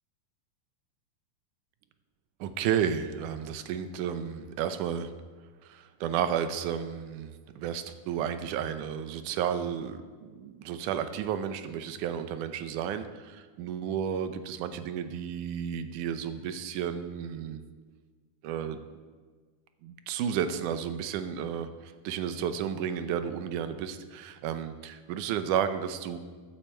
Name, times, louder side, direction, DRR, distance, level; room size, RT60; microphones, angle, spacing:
voice 1, 2.4-5.1 5.6-17.6 18.4-18.8 19.8-26.2, right 8 dB, 80° right, 10 dB, 2.2 m, -32 dB
15.0 x 10.0 x 4.5 m, 1.5 s
omnidirectional pair, 3.7 m